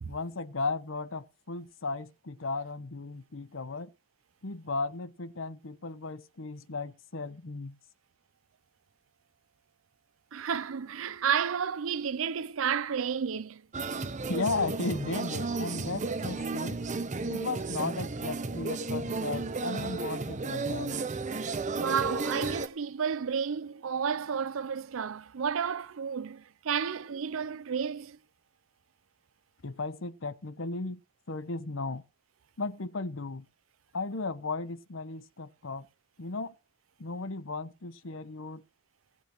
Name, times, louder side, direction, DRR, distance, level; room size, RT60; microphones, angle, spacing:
voice 1, 0.0-3.9 4.4-7.8 14.3-16.8 17.3-21.0 29.6-31.0 31.3-32.0 32.6-33.4 33.9-35.9 36.2-36.5 37.0-38.6, left 3 dB, 75° left, 1.0 m, -35 dB
voice 2, 10.3-13.6 21.7-28.2, right 7 dB, 85° right, 0.5 m, -31 dB
sound 1, 13.7-22.7, right 3 dB, 35° right, 0.7 m, -33 dB
18.0 x 8.4 x 3.0 m
head